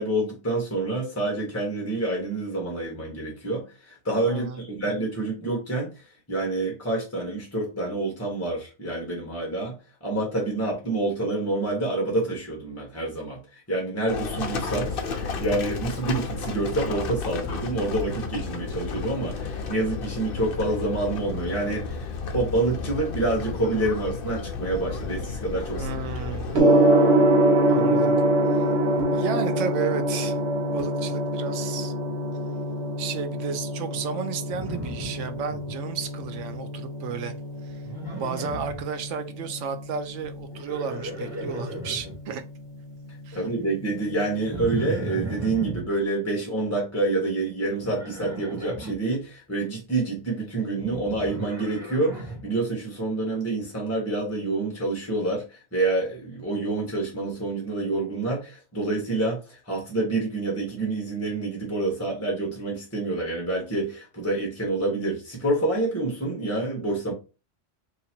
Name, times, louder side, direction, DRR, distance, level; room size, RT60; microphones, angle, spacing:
voice 1, 0.0-9.8 10.0-25.9 29.0-29.1 43.3-67.1, right 2 dB, 15° left, 1.0 m, -27 dB
voice 2, 4.2-4.6 25.8-26.6 27.7-28.2 28.5-28.6 29.1-30.4 30.7-31.9 33.0-37.3 37.6-37.8 38.2-42.4 43.3-43.4, right 7 dB, 80° right, 1.0 m, -33 dB
Livestock farm animals working animals, 14.1-26.6, left 4 dB, 55° left, 0.7 m, -32 dB
Gong, 26.5-45.6, right 1 dB, 60° right, 1.2 m, -26 dB
Livestock farm animals working animals 2, 34.5-35.7 36.0-36.5 37.8-38.8 40.4-42.2 44.5-45.8 47.8-48.9 50.7-52.5, right 2 dB, 20° right, 1.3 m, -35 dB
2.8 x 2.8 x 4.3 m
omnidirectional pair, 1.3 m